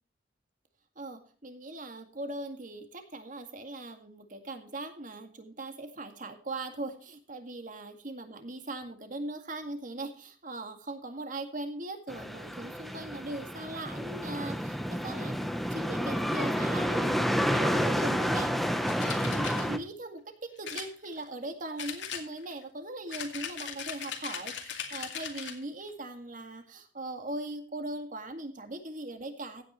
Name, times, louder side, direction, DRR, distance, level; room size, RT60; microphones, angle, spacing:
voice 1, 1.0-15.4 15.7-29.6, right 2 dB, 45° right, 6 dB, 2.1 m, -40 dB
sound 1, 12.1-19.8, equal, ahead, 0.9 m, -30 dB
sound 2, 18.9-19.6 20.6-21.4 21.8-22.6 23.1-25.6, left 7 dB, 75° left, 2.2 m, -39 dB
16.0 x 9.3 x 3.2 m, 0.42 s
head